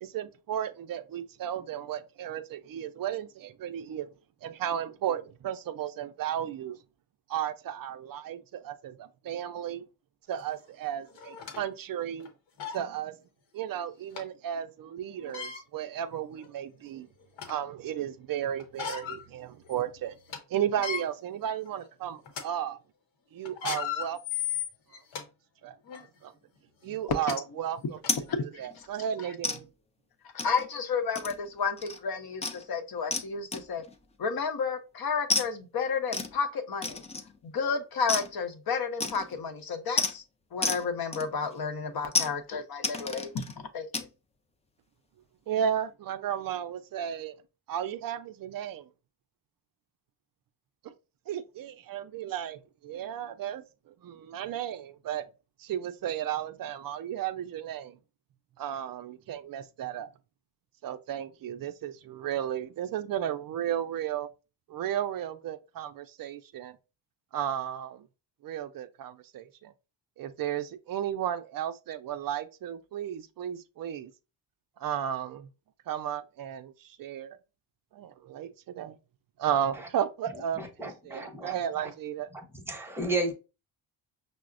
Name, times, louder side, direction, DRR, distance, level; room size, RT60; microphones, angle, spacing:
voice 1, 0.0-4.1 4.4-6.8 7.3-9.8 10.3-12.3 12.7-13.2 13.5-17.1 17.5-20.2 20.5-22.8 23.3-24.2 25.6-25.7 26.2-26.3 26.8-28.0 28.4-29.7 45.5-47.4 47.7-48.9 50.8-50.9 51.3-55.2 55.6-58.0 58.6-60.1 60.8-64.3 64.7-66.8 67.3-68.1 68.4-69.7 70.2-74.1 74.8-75.5 75.9-77.3 77.9-79.0 79.4-82.3, right 10 dB, 50° right, 0.4 m, -34 dB
sound 1, 10.4-10.5 11.2-11.6 12.2-12.3 12.6-12.8 14.2-14.3 15.2-15.6 16.4-16.5 16.9-17.6 18.6-19.2 19.6-19.7 20.1-20.4 20.7-21.0 21.7-21.9 22.3-22.4 23.5-25.2 25.9-26.0 26.9-27.0 27.3-27.4 28.0-28.1, left 8 dB, 80° left, 0.9 m, -35 dB
sound 2, 28.1-28.3 28.6-28.8 29.4-29.6 30.4-30.7 31.1-31.5 31.8-32.0 32.4-32.6 33.1-33.3 33.5-33.9 35.3-35.5 36.1-36.3 36.8-37.4 38.1-38.3 39.0-39.4 40.0-40.1 40.6-40.9 41.1-41.6 42.1-42.3 42.8-43.5 43.9-44.1, left 3 dB, 15° left, 0.4 m, -31 dB
voice 2, 28.3-28.7 29.2-29.3 30.4-33.8 34.2-37.0 37.4-40.2 40.5-43.5 43.7-44.1, left 5 dB, 50° left, 0.8 m, -31 dB
voice 3, 80.6-81.9 82.7-83.3, right 2 dB, 5° right, 0.8 m, -33 dB
5.6 x 2.1 x 2.4 m
cardioid pair, 80°, 46 cm